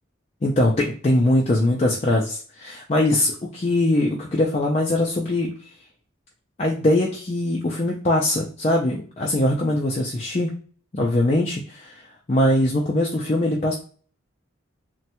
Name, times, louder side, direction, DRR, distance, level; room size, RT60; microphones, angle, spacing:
voice 1, 0.4-5.7 6.6-10.5 10.9-12.0 12.3-13.7, left 1 dB, 35° left, -2 dB, 0.4 m, -21 dB
3.1 x 2.2 x 2.9 m, 0.42 s
head